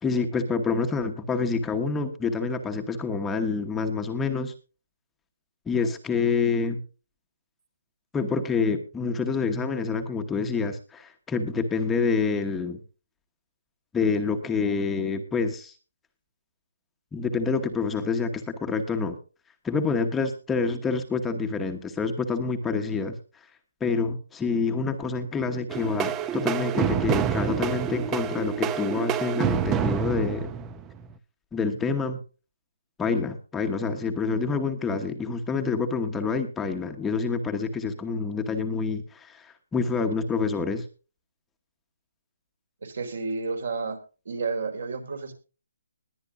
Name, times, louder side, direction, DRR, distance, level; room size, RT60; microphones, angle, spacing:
voice 1, 0.0-4.5 5.7-6.8 8.1-12.8 13.9-15.7 17.1-19.2 19.6-23.1 23.8-30.5 31.5-32.2 33.0-40.8, left 4 dB, 5° left, 5 dB, 1.1 m, -27 dB
sound 1, 25.7-31.2, right 9 dB, 15° right, 0.6 m, -28 dB
voice 2, 42.8-44.0 44.2-45.3, right 4 dB, 65° right, 6 dB, 4.1 m, -31 dB
21.0 x 9.5 x 2.6 m, 0.34 s
hypercardioid pair, 165°, 0 cm